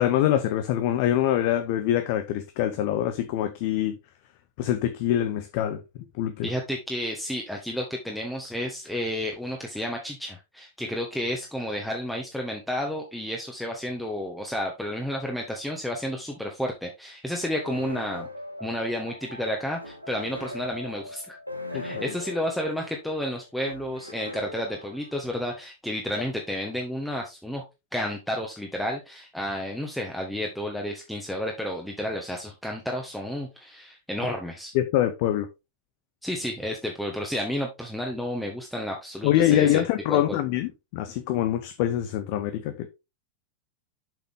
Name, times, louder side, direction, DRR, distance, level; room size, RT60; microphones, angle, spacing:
voice 1, 0.0-4.0 4.6-5.8 6.2-6.5 21.7-22.1 34.7-35.5 39.2-42.9, left 12 dB, 45° left, 0.8 m, -24 dB
voice 2, 6.4-18.3 18.6-21.4 21.7-27.6 27.9-34.7 36.2-40.4, equal, ahead, 1.4 m, -31 dB
sound 1, 17.6-25.3, left 1 dB, 90° left, 1.4 m, -40 dB
7.1 x 5.8 x 3.6 m
figure-of-eight pair, 90°, 0 cm